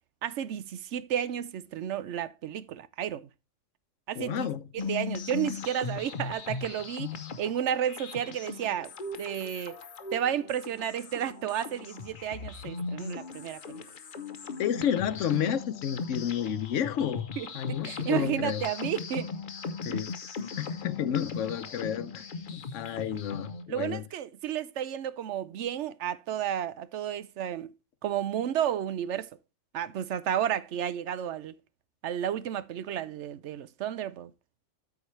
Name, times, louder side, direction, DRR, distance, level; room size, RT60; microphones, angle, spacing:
voice 1, 0.2-3.3 4.1-4.5 4.7-7.1 7.4-9.8 10.1-13.8 17.4-19.3 23.7-27.7 28.0-29.3 29.7-31.5 32.0-34.3, right 10 dB, 70° right, 0.9 m, -32 dB
voice 2, 4.2-4.7 14.6-17.2 17.5-18.6 19.8-20.1 20.6-24.0, left 9 dB, 80° left, 1.0 m, -31 dB
sound 1, 4.8-23.6, left 4 dB, 50° left, 0.9 m, -38 dB
13.0 x 4.8 x 3.1 m
omnidirectional pair, 1.3 m